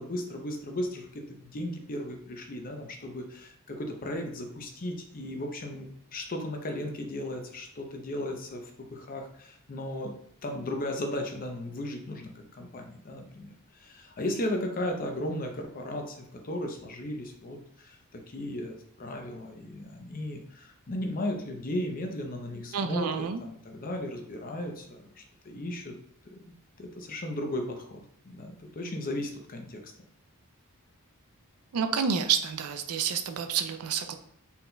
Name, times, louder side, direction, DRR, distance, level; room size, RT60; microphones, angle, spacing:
voice 1, 0.0-8.6 8.9-10.1 10.4-16.2 16.4-18.0 18.3-25.9 26.3-26.4 26.8-29.9, left 1 dB, 40° left, 3 dB, 0.6 m, -36 dB
voice 2, 22.7-23.4 31.7-34.1, right 7 dB, 90° right, 8 dB, 0.5 m, -29 dB
4.2 x 3.8 x 2.2 m, 0.68 s
head